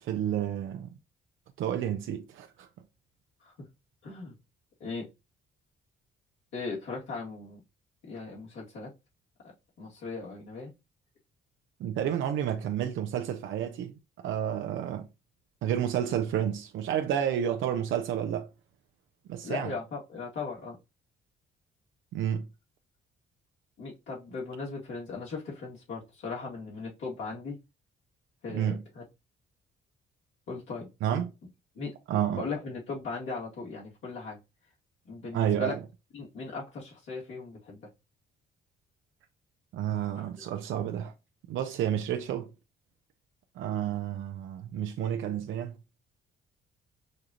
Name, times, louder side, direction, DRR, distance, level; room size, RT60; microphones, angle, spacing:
voice 1, 0.0-0.9 1.6-2.7 11.8-13.9 14.2-15.1 15.6-18.5 19.3-19.7 22.1-22.5 28.5-28.8 31.0-31.3 32.1-32.4 35.3-35.8 39.7-41.1 41.5-42.5 43.6-45.7, right 10 dB, 80° right, 0.6 m, -30 dB
voice 2, 4.0-4.4 4.8-5.1 6.5-7.6 8.0-8.9 9.8-10.7 19.4-20.8 23.8-27.6 28.4-29.0 30.5-30.9 31.7-31.9 32.3-34.4 35.1-35.8 36.1-37.9 40.1-40.2, left 4 dB, 80° left, 2.1 m, -38 dB
6.5 x 2.5 x 2.8 m
cardioid pair, 90°, 20 cm